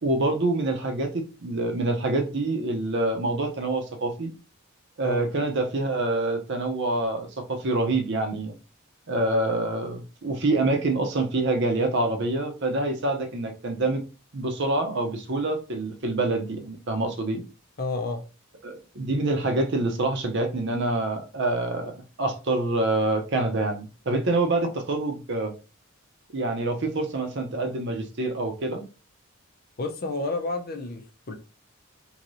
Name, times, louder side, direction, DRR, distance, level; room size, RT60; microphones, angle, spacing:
voice 1, 0.0-4.3 5.0-8.5 9.1-14.0 14.3-17.4 18.6-25.5 26.3-28.8, right 2 dB, 55° right, 0.7 m, -26 dB
voice 2, 17.8-18.2 29.8-31.4, left 3 dB, 45° left, 0.6 m, -30 dB
3.1 x 2.8 x 2.6 m
head